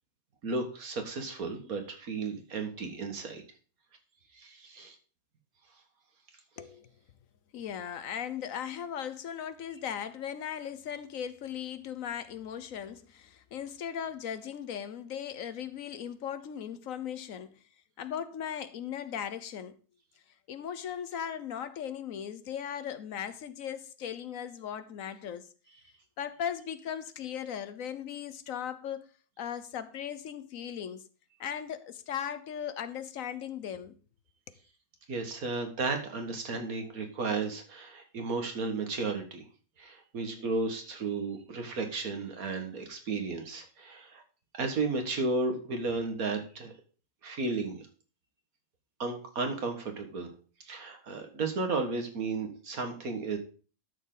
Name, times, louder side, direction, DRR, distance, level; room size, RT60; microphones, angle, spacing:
voice 1, 0.4-3.4 4.3-5.0 35.1-39.4 39.8-44.2 44.5-46.7 47.2-47.8 49.0-50.3 50.7-53.4, right 3 dB, 75° right, 2.1 m, -33 dB
voice 2, 6.6-6.9 7.5-17.6 18.0-19.8 20.5-25.5 26.2-29.1 29.4-31.0 31.4-34.0, left 9 dB, 70° left, 1.2 m, -38 dB
12.0 x 6.8 x 3.9 m
omnidirectional pair, 1.5 m